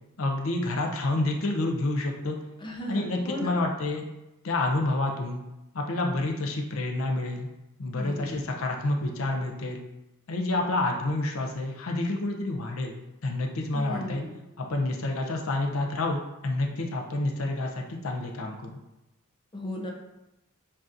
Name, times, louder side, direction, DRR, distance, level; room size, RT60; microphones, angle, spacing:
voice 1, 0.2-2.4 2.9-4.1 4.4-5.4 5.7-7.5 7.8-9.8 10.3-13.0 13.2-14.2 14.6-18.6, left 2 dB, 70° left, 1 dB, 0.6 m, -28 dB
voice 2, 2.6-3.6 7.9-8.4 13.7-14.4 19.5-19.9, equal, 20° left, -1 dB, 0.6 m, -36 dB
7.4 x 2.8 x 2.5 m, 0.96 s
head